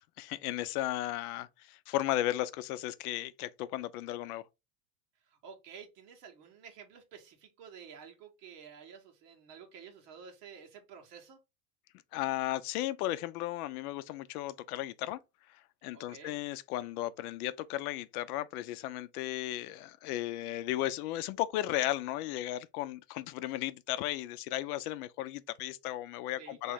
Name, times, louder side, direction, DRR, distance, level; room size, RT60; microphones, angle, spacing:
voice 1, 0.0-4.4 12.1-15.2 15.5-26.7, left 14 dB, 65° left, 0.5 m, -35 dB
voice 2, 5.3-11.4 15.9-16.4 26.4-26.7, right 7 dB, 75° right, 1.4 m, -51 dB
3.0 x 2.8 x 3.5 m
supercardioid pair, 110°, 49 cm